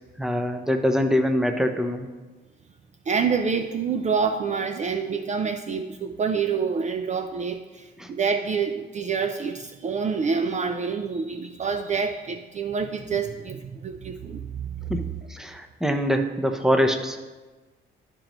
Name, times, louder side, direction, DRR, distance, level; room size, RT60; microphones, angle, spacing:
voice 1, 0.2-2.1 8.0-8.1 14.9-17.2, equal, ahead, 6 dB, 0.7 m, -24 dB
voice 2, 3.1-14.8, right 5 dB, 35° right, 7 dB, 0.4 m, -27 dB
12.0 x 5.1 x 3.0 m, 1.2 s
cardioid pair, 90°, 20 cm